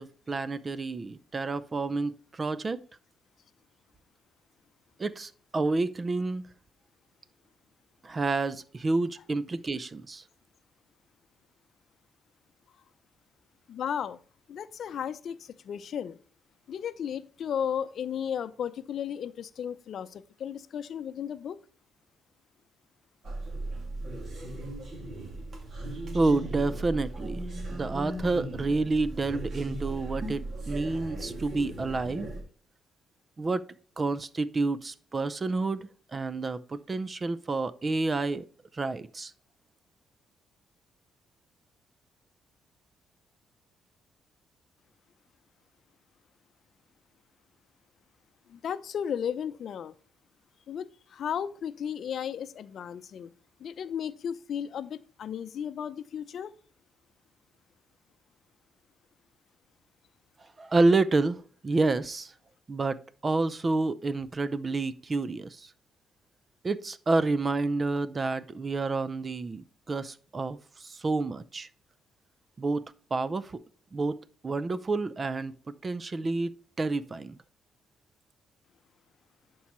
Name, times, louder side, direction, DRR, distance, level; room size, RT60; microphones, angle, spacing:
voice 1, 0.0-2.8 5.0-6.4 8.0-10.2 26.1-27.4 27.7-32.3 33.4-33.6 34.0-38.4 38.7-39.3 60.6-62.3 62.7-65.7 66.6-71.7 72.6-72.8 73.1-73.6 73.9-75.5 75.8-77.4, right 3 dB, 30° right, 0.5 m, -29 dB
voice 2, 13.7-14.2 14.5-16.2 16.7-21.6 48.5-49.9 50.7-53.3 53.6-56.5, left 8 dB, 60° left, 0.6 m, -34 dB
sound 1, 23.2-32.4, right 2 dB, 45° right, 2.4 m, -37 dB
11.0 x 4.7 x 3.1 m
cardioid pair, 90°, 0 cm